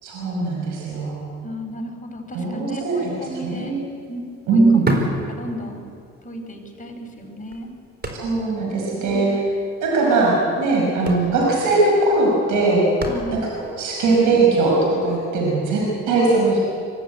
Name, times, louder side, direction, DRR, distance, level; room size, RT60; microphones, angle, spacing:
voice 1, 0.0-1.3 2.3-3.1 3.4-3.8 4.5-4.8 8.1-9.3 9.8-12.9 13.3-13.4 13.8-16.6, right 3 dB, 90° right, -2 dB, 5.3 m, -20 dB
voice 2, 1.4-3.8 4.1-4.2 4.5-4.9 5.3-5.8 6.2-7.7 9.0-9.3 13.0-13.4, equal, 25° left, 3 dB, 5.3 m, -34 dB
sound 1, 3.1-3.2 3.5-6.1 6.4-6.5 7.2-8.7 8.9-9.0 9.3-9.5 10.4-10.6 10.8-13.7 14.3-14.4, right 1 dB, 35° right, 4.2 m, -29 dB
24.5 x 15.0 x 9.3 m, 2.6 s
cardioid pair, 90°, 30 cm